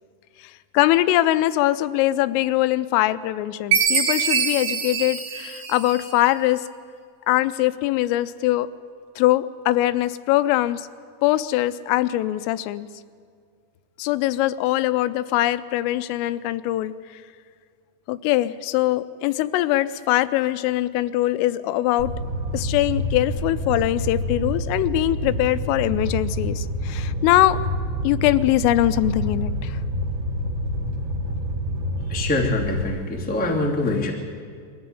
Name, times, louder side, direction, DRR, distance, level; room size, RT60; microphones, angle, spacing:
voice 1, 0.7-6.7 7.3-8.7 9.2-10.9 11.2-12.9 14.0-16.9 18.1-22.1 22.5-27.6 28.0-29.8, left 15 dB, 85° left, 13 dB, 3.3 m, -22 dB
Chime, 3.7-6.3, right 6 dB, 70° right, 4.4 m, -23 dB
Fire, 22.0-32.8, equal, 50° right, 3.1 m, -27 dB
voice 2, 32.1-34.1, left 2 dB, 5° left, -2 dB, 0.8 m, -24 dB
23.0 x 14.5 x 9.7 m, 2.2 s
omnidirectional pair, 5.7 m